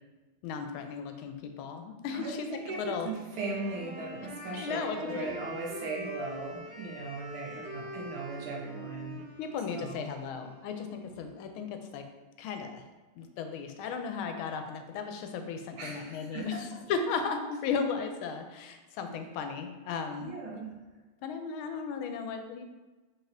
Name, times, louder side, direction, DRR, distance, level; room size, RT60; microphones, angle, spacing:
voice 1, 0.4-3.1 4.5-5.4 9.4-12.0 12.4-12.8 13.2-20.3 21.2-22.6, left 5 dB, 85° left, 6 dB, 1.4 m, -35 dB
voice 2, 2.1-9.2 9.7-10.0 15.8-16.8 20.2-20.7, right 3 dB, 85° right, -2 dB, 1.8 m, -38 dB
Wind instrument woodwind instrument, 3.2-11.1, right 1 dB, 65° right, 1.8 m, -44 dB
4.5 x 4.0 x 2.6 m, 1.2 s
omnidirectional pair, 2.2 m